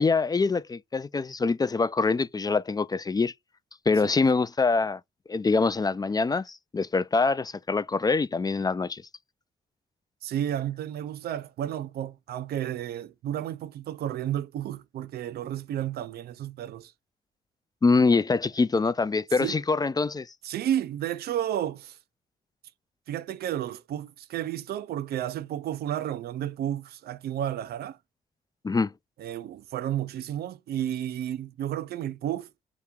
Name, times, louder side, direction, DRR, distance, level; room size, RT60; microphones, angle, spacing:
voice 1, 0.0-3.3 3.9-5.0 5.3-9.0 17.8-20.3 28.6-28.9, left 4 dB, 25° left, 0.3 m, -24 dB
voice 2, 10.2-16.9 19.4-19.6 20.4-22.0 23.1-28.0 29.2-32.5, right 11 dB, 75° right, 0.4 m, -32 dB
3.2 x 3.0 x 3.5 m
supercardioid pair, 60°, 16 cm